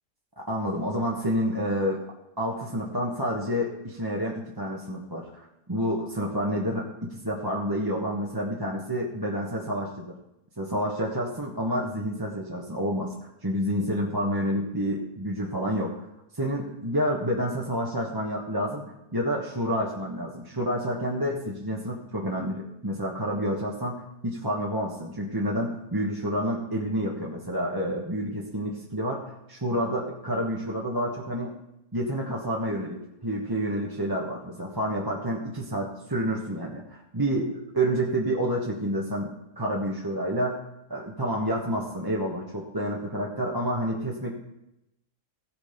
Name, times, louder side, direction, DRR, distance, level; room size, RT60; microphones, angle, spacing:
voice 1, 0.4-2.0 2.4-5.3 5.7-10.1 10.6-13.1 13.4-15.9 16.3-31.6 31.9-40.6 40.9-44.3, equal, 15° right, -3 dB, 1.2 m, -29 dB
16.5 x 6.4 x 5.2 m, 0.86 s
omnidirectional pair, 1.8 m